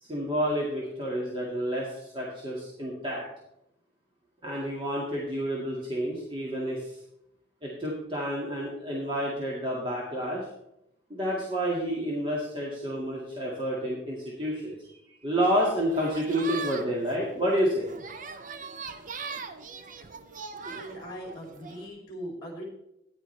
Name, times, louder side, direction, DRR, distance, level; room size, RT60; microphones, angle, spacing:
voice 1, 0.0-3.2 4.4-7.0 7.6-10.5 11.1-17.9, equal, 30° right, -4 dB, 1.9 m, -29 dB
sound 1, 15.6-21.9, right 5 dB, 45° right, 0.7 m, -40 dB
voice 2, 20.7-22.6, equal, 25° left, -1 dB, 2.8 m, -40 dB
14.0 x 9.9 x 3.3 m, 0.82 s
head